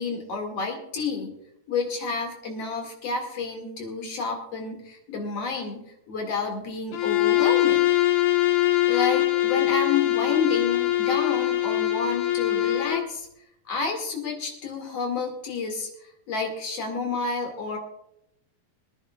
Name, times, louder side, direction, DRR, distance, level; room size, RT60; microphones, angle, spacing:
voice 1, 0.0-1.3 1.7-5.8 6.1-7.9 8.9-13.3 13.6-17.8, left 4 dB, 50° left, 2 dB, 3.2 m, -30 dB
Bowed string instrument, 6.9-13.1, left 15 dB, 70° left, 1.8 m, -22 dB
24.5 x 10.5 x 2.4 m, 0.81 s
omnidirectional pair, 3.7 m